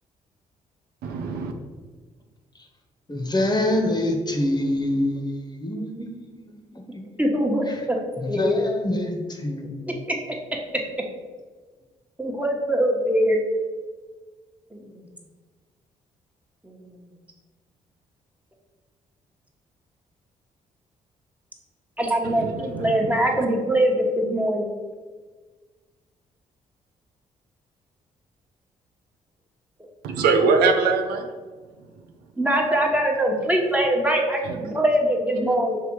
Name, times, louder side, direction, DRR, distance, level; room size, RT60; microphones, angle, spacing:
voice 1, 1.0-1.5 22.2-22.5 22.7-23.1 30.0-31.3 34.4-34.6, right 4 dB, 80° right, 4 dB, 0.6 m, -22 dB
voice 2, 3.1-7.2 7.6-7.9 8.2-10.0, left 1 dB, 25° left, 3 dB, 1.3 m, -26 dB
voice 3, 7.2-8.0 8.3-8.6 10.1-10.2 10.7-10.8 12.2-13.4 14.7-15.1 16.6-16.7 22.0-24.8 32.4-35.8, right 1 dB, 10° right, 0 dB, 1.3 m, -22 dB
6.0 x 3.3 x 4.7 m, 1.4 s
supercardioid pair, 50°, 15 cm